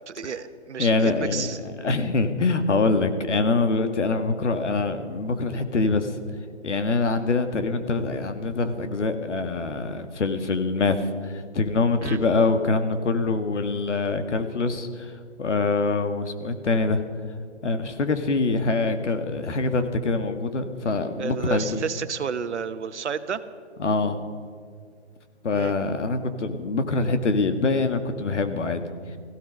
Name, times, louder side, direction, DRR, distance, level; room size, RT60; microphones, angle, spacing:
voice 1, 0.1-1.6 12.0-12.2 21.2-23.4 25.5-25.7, right 6 dB, 80° right, 12 dB, 1.1 m, -31 dB
voice 2, 0.8-1.5 1.8-6.2 6.6-17.0 17.6-21.8 23.8-24.2 25.4-28.8, left 3 dB, 85° left, 8 dB, 1.8 m, -24 dB
17.0 x 15.5 x 5.3 m, 2.2 s
hypercardioid pair, 165°, 35 cm